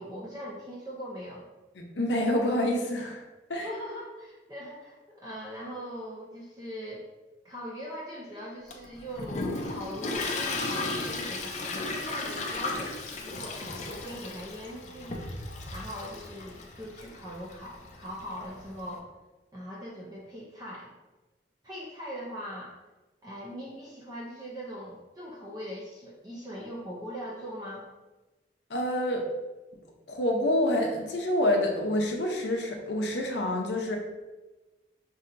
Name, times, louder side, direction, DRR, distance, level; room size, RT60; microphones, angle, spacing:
voice 1, 0.0-1.5 3.5-7.1 7.4-15.2 15.7-19.1 19.5-20.9 21.6-22.8 23.2-27.9, equal, 20° right, -5 dB, 0.5 m, -41 dB
voice 2, 1.8-3.2 3.5-3.7 28.7-29.3 30.1-34.0, left 1 dB, 75° left, 1 dB, 0.7 m, -27 dB
Toilet flush, 8.7-18.9, left 3 dB, 40° left, 0.5 m, -35 dB
5.5 x 2.7 x 2.6 m, 1.1 s
head